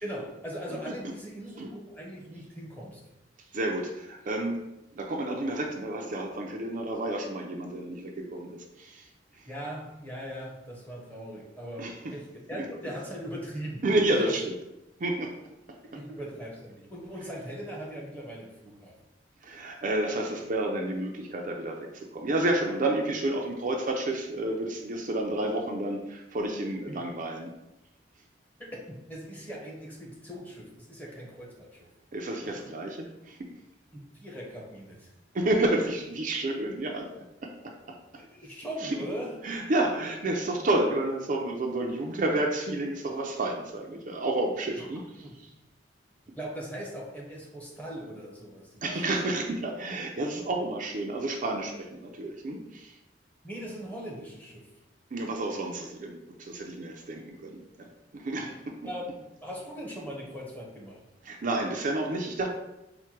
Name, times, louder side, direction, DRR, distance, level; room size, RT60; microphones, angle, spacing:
voice 1, 0.0-3.0 9.4-14.4 15.9-18.9 26.9-27.0 28.6-31.9 32.4-32.6 33.9-35.1 38.2-39.4 44.8-44.9 45.2-45.4 46.4-49.0 53.4-54.7 58.8-61.0, equal, 10° left, -3 dB, 1.0 m, -40 dB
voice 2, 3.5-4.6 4.9-9.0 11.8-11.9 12.6-12.7 13.8-14.4 15.0-15.3 19.4-27.5 32.1-33.4 35.3-37.1 37.4-37.7 38.8-38.9 39.4-45.0 48.8-52.9 55.1-58.6 61.3-62.5, right 2 dB, 45° right, 1 dB, 0.5 m, -30 dB
4.5 x 2.1 x 4.4 m, 0.93 s
head